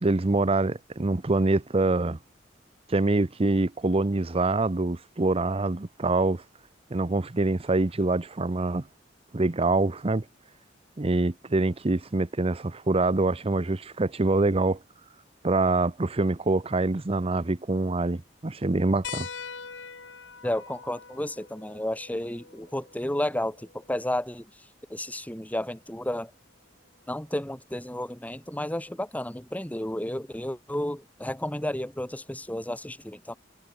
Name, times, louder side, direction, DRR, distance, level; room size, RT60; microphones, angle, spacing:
voice 1, 0.0-2.2 2.9-6.4 6.9-8.9 9.3-10.3 11.0-14.8 15.4-19.3, right 2 dB, 30° right, 0.8 m, -25 dB
sound 1, 19.0-24.1 25.7-25.8 27.4-27.5, left 6 dB, 80° left, 4.1 m, -43 dB
voice 2, 20.4-24.5 24.9-26.3 27.1-33.4, left 1 dB, 10° left, 1.8 m, -32 dB
head